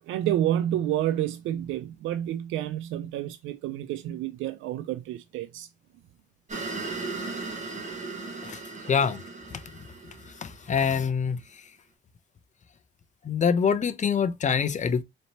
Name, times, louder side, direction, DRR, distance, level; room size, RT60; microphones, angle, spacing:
voice 1, 0.1-5.7, right 12 dB, 85° right, 0.4 m, -29 dB
sound 1, 6.5-11.1, right 3 dB, 35° right, 1.9 m, -37 dB
voice 2, 8.9-9.2 9.5-9.6 10.4-11.4 13.2-15.0, left 6 dB, 40° left, 0.6 m, -25 dB
4.2 x 3.2 x 2.8 m
cardioid pair, 90°, 20 cm